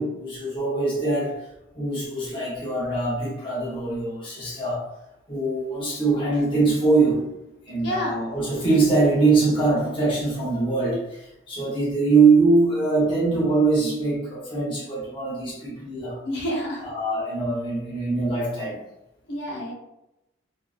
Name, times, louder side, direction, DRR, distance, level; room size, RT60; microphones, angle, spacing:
voice 1, 0.0-1.4 1.7-4.8 5.3-7.2 7.7-16.2 16.8-18.8, right 3 dB, 25° left, -7 dB, 0.7 m, -22 dB
voice 2, 7.8-8.2 16.2-16.8 19.3-19.7, equal, 60° left, -4 dB, 0.8 m, -28 dB
2.7 x 2.5 x 2.4 m, 0.90 s
head